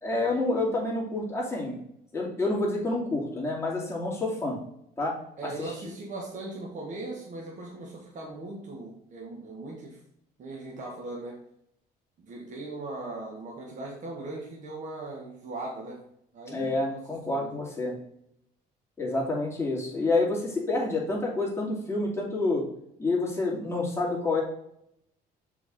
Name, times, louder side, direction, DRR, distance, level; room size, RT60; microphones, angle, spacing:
voice 1, 0.0-1.8 2.1-4.6 5.0-5.1 5.4-5.7 16.5-17.9 19.0-22.6 23.0-24.4, left 2 dB, 15° left, -4 dB, 2.5 m, -28 dB
voice 2, 5.4-10.0 10.4-11.4 12.2-16.0 16.3-17.0 17.3-17.5, right 2 dB, 50° right, -2 dB, 1.7 m, -39 dB
6.7 x 4.8 x 3.7 m, 0.75 s
cardioid pair, 110°, 17 cm